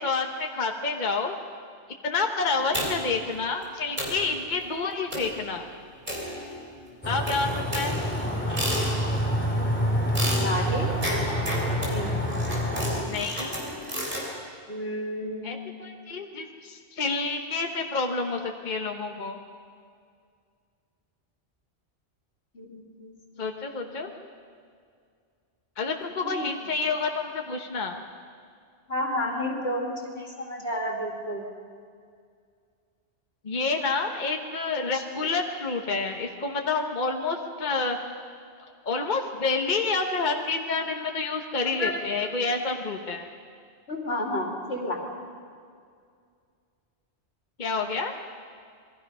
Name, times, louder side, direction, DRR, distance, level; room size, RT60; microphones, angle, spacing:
voice 1, 0.0-1.3 2.0-5.6 7.0-8.0 13.1-13.6 15.4-19.4 23.4-24.1 25.8-28.0 33.4-38.0 38.8-43.3 47.6-48.1, left 4 dB, 45° left, 3 dB, 1.3 m, -28 dB
sound 1, 2.7-3.2 3.6-3.7 4.0-4.3 5.1-5.4 6.1-6.8 7.3-9.3 10.1-14.3, equal, 45° right, 4.6 m, -32 dB
sound 2, 7.0-13.0, equal, 10° left, 2.8 m, -27 dB
voice 2, 8.0-8.6 10.3-10.9 11.8-12.1 14.7-15.7 22.5-24.1 26.2-26.5 28.9-31.5 41.7-42.0 43.9-45.0, left 1 dB, 65° left, 0 dB, 2.9 m, -32 dB
27.5 x 21.0 x 5.5 m, 2.2 s
omnidirectional pair, 1.1 m